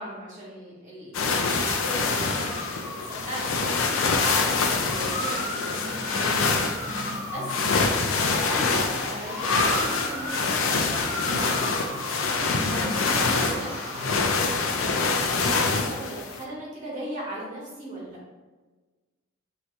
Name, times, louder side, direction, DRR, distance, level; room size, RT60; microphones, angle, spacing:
voice 1, 0.0-2.5 2.9-6.2 7.3-7.8 8.1-12.0 12.6-18.2, equal, 40° right, -6 dB, 1.2 m, -37 dB
sound 1, 1.1-16.4, left 4 dB, 70° left, 0.4 m, -26 dB
sound 2, 1.6-14.1, equal, 20° right, 1.2 m, -35 dB
voice 2, 6.0-7.2 12.5-13.0, equal, 5° left, -5 dB, 0.6 m, -37 dB
2.8 x 2.7 x 3.2 m, 1.3 s
head